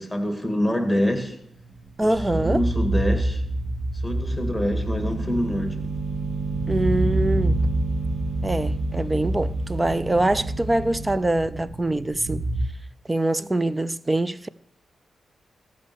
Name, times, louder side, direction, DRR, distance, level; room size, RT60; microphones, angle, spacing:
voice 1, 0.0-1.3 2.0-3.4 4.0-5.9, equal, ahead, 2.2 m, -26 dB
sound 1, 1.5-12.6, right 1 dB, 85° right, 2.9 m, -27 dB
voice 2, 2.0-2.6 6.7-7.6 8.4-12.5 13.0-14.5, right 1 dB, 20° right, 0.5 m, -24 dB
sound 2, 4.9-11.1, right 4 dB, 55° right, 3.1 m, -32 dB
14.5 x 5.3 x 8.4 m
cardioid pair, 90°, 0 cm